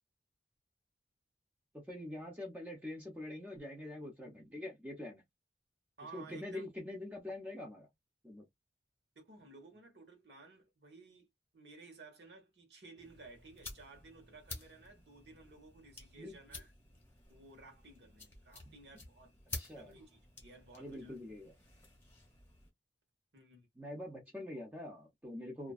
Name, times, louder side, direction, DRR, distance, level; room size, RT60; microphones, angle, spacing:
voice 1, 1.7-5.2 6.1-7.9 8.2-8.5 16.2-16.4 19.6-19.9 20.7-21.5 23.8-25.7, left 1 dB, 10° right, 0.6 m, -45 dB
voice 2, 6.0-6.7 9.1-11.3 11.5-16.7 17.3-19.3 19.7-21.2 23.3-23.7 25.6-25.7, right 3 dB, 65° right, 1.1 m, -56 dB
sound 1, 13.0-22.7, left 3 dB, 15° left, 1.0 m, -51 dB
2.4 x 2.2 x 2.3 m
head